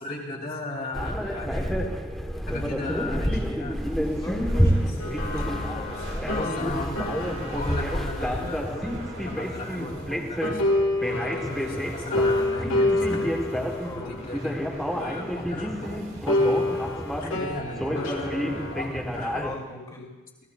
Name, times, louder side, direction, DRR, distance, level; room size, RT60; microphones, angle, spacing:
voice 1, 0.0-1.9 2.5-3.8 6.3-7.0 7.5-8.9 9.2-10.7 11.2-13.4 13.9-14.6 14.9-16.0 16.3-19.5, left 2 dB, 45° left, -2 dB, 2.7 m, -37 dB
sound 1, 0.9-19.6, equal, ahead, 1.1 m, -29 dB
sound 2, 3.7-19.4, right 3 dB, 65° right, 4.6 m, -49 dB
voice 2, 4.0-6.7 8.0-8.6 11.0-11.3 13.8-14.1 19.4-20.1, left 1 dB, 20° left, -3 dB, 2.6 m, -40 dB
sound 3, 5.0-10.1 10.4-15.9 16.3-18.8, left 1 dB, 65° left, 1.4 m, -29 dB
25.5 x 16.5 x 2.3 m, 1.1 s
head